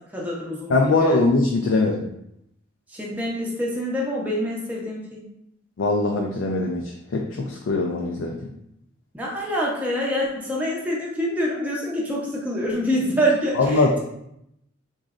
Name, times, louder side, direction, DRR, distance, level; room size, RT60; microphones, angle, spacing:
voice 1, 0.1-1.2 2.9-5.3 9.1-14.0, equal, 10° right, -4 dB, 0.6 m, -26 dB
voice 2, 0.7-2.0 5.8-6.8 7.1-8.3 13.5-14.0, left 3 dB, 80° left, 0 dB, 0.4 m, -21 dB
3.7 x 3.1 x 2.4 m, 0.78 s
head